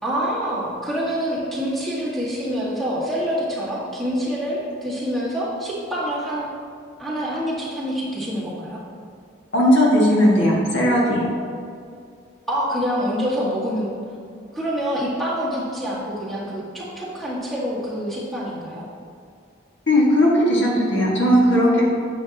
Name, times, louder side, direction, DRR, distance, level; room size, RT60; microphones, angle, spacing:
voice 1, 0.0-6.5 7.0-8.8 12.5-13.9 14.5-18.9, equal, ahead, -9 dB, 1.8 m, -26 dB
voice 2, 9.5-11.2 19.9-21.8, equal, 75° left, -4 dB, 1.8 m, -17 dB
10.5 x 7.3 x 2.9 m, 2.3 s
head